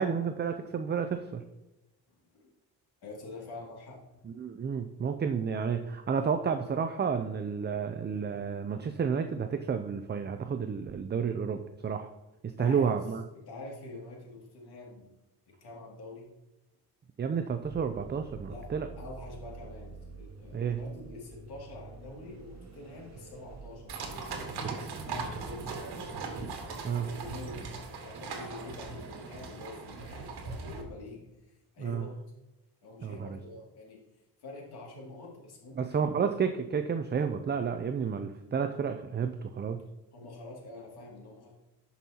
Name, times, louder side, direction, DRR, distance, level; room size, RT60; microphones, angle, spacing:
voice 1, 0.0-1.4 4.3-12.1 12.4-13.2 17.2-18.9 20.5-20.8 26.8-27.1 31.8-32.0 33.0-33.4 35.8-39.8, right 6 dB, 25° right, 8 dB, 0.5 m, -31 dB
voice 2, 2.1-2.5 3.0-4.2 12.6-13.0 13.3-15.1 15.5-16.3 18.5-18.7 19.0-26.1 26.5-32.1 32.8-34.0 34.4-36.1 40.1-41.5, left 2 dB, 70° left, -2 dB, 2.6 m, -46 dB
sound 1, 17.6-24.4, right 3 dB, 45° right, 1.6 m, -48 dB
sound 2, 23.9-30.8, right 4 dB, 75° right, 1.6 m, -39 dB
11.5 x 5.5 x 2.9 m, 0.99 s
cardioid pair, 90°, 40 cm